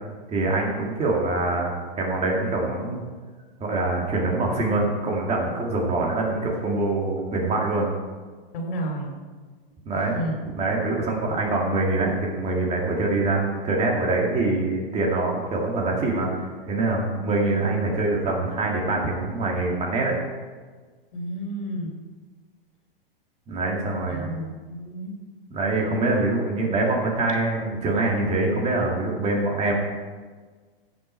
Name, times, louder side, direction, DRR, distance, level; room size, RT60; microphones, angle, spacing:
voice 1, 0.3-3.0 3.6-7.9 9.9-10.2 10.6-20.2 23.5-24.3 25.5-29.7, right 2 dB, 20° right, -1 dB, 2.1 m, -24 dB
voice 2, 8.5-9.2 9.9-10.4 17.4-17.9 21.1-22.0 24.1-25.1, right 1 dB, 65° left, 1 dB, 3.3 m, -32 dB
15.5 x 6.2 x 4.5 m, 1.4 s
hypercardioid pair, 135°, 29 cm